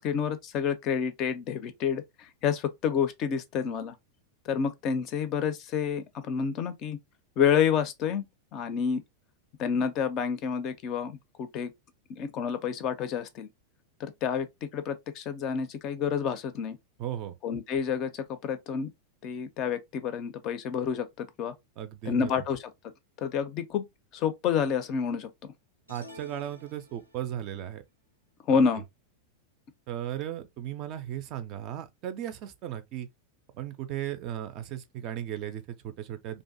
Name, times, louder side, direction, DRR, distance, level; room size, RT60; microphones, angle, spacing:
voice 1, 0.0-4.0 4.5-7.0 7.4-8.2 8.5-9.0 9.6-11.7 12.1-13.5 14.0-16.8 17.4-18.9 19.2-21.5 22.1-22.7 23.2-23.8 24.1-25.3 28.5-28.8, left 7 dB, 35° left, 0.4 m, -29 dB
voice 2, 17.0-17.3 21.8-22.4 25.9-27.8 29.9-33.1 33.5-36.4, right 11 dB, 40° right, 0.4 m, -36 dB
sound 1, 25.9-27.4, left 1 dB, 90° left, 0.5 m, -50 dB
2.5 x 2.1 x 2.5 m
figure-of-eight pair, 90°, 0 cm